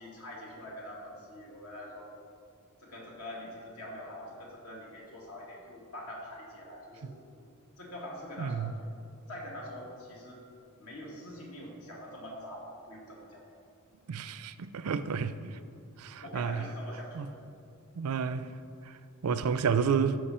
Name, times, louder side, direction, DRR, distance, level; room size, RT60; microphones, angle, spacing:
voice 1, 0.0-2.1 2.8-7.5 7.8-8.7 9.3-10.4 10.8-13.4 16.2-17.4, left 1 dB, 75° left, 2.3 m, -44 dB
voice 2, 8.4-8.7 14.1-15.6 16.0-16.7 17.2-17.3 18.0-18.5 18.9-19.0 19.2-20.2, right 6 dB, 70° right, 0.4 m, -30 dB
14.0 x 5.3 x 4.3 m
head